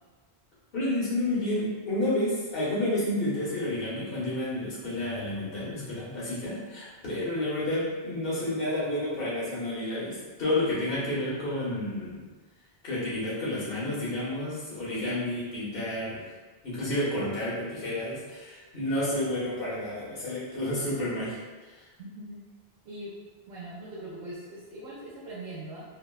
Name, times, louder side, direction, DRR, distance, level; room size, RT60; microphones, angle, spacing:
voice 1, 0.7-12.2 12.8-16.2 16.6-21.4, left 1 dB, 60° left, -8 dB, 1.2 m, -30 dB
voice 2, 22.0-22.4 22.8-23.1 23.5-25.8, right 1 dB, 75° right, -9 dB, 0.9 m, -41 dB
3.4 x 2.2 x 2.2 m, 1.3 s
omnidirectional pair, 1.1 m